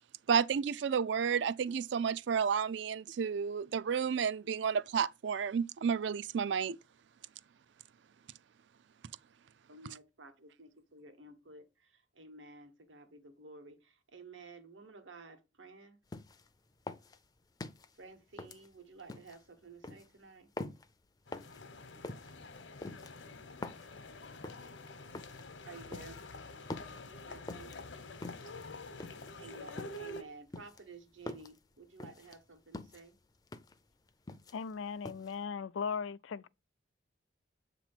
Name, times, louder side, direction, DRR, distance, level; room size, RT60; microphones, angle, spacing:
voice 1, 0.3-6.8, right 6 dB, 70° right, 0.4 m, -31 dB
voice 2, 9.7-16.0 18.0-20.5 25.6-26.2 27.0-27.8 29.4-33.1, right 3 dB, 85° right, 1.3 m, -53 dB
sound 1, 16.1-16.5 16.9-17.9 18.4-19.4 19.8-20.1 20.6-20.9 21.3-21.6 22.0-22.3 22.8-23.9 24.4-24.7 25.1-25.5 25.9-26.3 26.7-27.0 27.5-27.8 28.2-28.6 29.0-29.3 29.8-30.1 30.5-31.6 32.0-32.4 32.7-33.1 33.5-33.8 34.1-34.7 35.1-35.3, left 2 dB, 20° left, 0.4 m, -45 dB
sound 2, 21.3-30.2, left 2 dB, 70° left, 0.9 m, -48 dB
voice 3, 34.5-36.5, left 6 dB, 90° left, 0.4 m, -38 dB
7.8 x 3.0 x 5.9 m
head